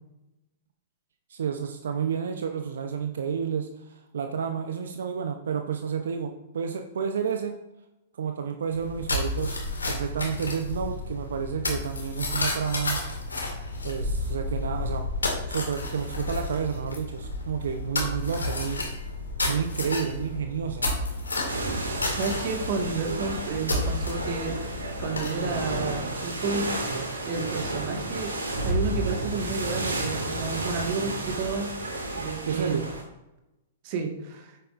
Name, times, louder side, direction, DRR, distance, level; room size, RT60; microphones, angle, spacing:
voice 1, 1.3-7.5 8.2-9.6 9.9-13.0 13.8-15.1 15.5-18.8 19.4-20.9 32.5-32.9, right 7 dB, 70° right, 6 dB, 0.6 m, -30 dB
sound 1, 8.7-26.6, left 2 dB, 85° left, 2.0 m, -32 dB
sound 2, 21.5-33.0, right 2 dB, 85° right, 2.0 m, -31 dB
voice 2, 22.1-26.6 27.2-28.3 28.6-31.7 32.1-32.8 33.8-34.6, right 4 dB, 45° right, 3 dB, 1.6 m, -31 dB
9.4 x 7.6 x 2.5 m, 0.97 s
figure-of-eight pair, 110°, 0 cm